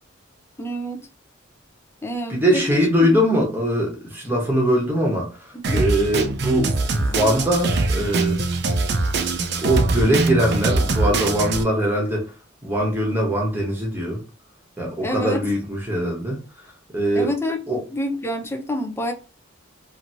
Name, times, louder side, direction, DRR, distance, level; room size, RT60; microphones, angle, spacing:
voice 1, 0.6-1.0 2.0-3.2 5.5-5.8 15.0-15.4 17.1-19.1, equal, 10° left, 0.4 m, -28 dB
voice 2, 2.3-5.3 5.7-8.4 9.6-12.3 12.6-14.2 14.8-16.4 16.9-17.3 17.7-17.8, equal, 10° right, 1.0 m, -21 dB
Drum kit, 5.6-11.6, right 3 dB, 55° right, 0.5 m, -22 dB
2.9 x 2.6 x 2.6 m
head